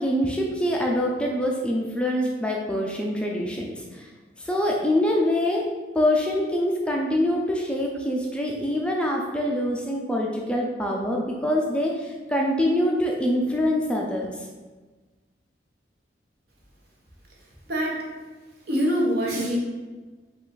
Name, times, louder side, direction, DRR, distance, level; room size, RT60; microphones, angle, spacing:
voice 1, 0.0-4.1 4.4-5.6 5.9-14.3, left 1 dB, 5° left, -1 dB, 0.4 m, -25 dB
voice 2, 18.7-19.6, equal, 60° right, -3 dB, 1.1 m, -24 dB
5.5 x 2.4 x 3.8 m, 1.3 s
head